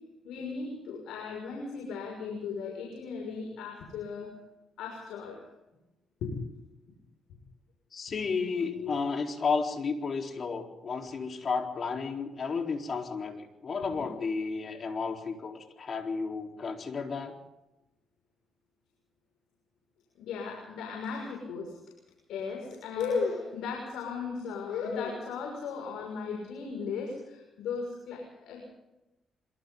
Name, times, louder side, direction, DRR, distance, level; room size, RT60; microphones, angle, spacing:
voice 1, 0.2-4.3 4.8-5.4 6.2-6.3 8.7-8.9 20.1-21.8 22.3-28.7, left 5 dB, 85° left, 1 dB, 6.2 m, -36 dB
voice 2, 7.9-17.4, left 5 dB, 45° left, 2 dB, 4.2 m, -32 dB
26.0 x 24.5 x 4.0 m, 0.97 s
cardioid pair, 90°, 0 cm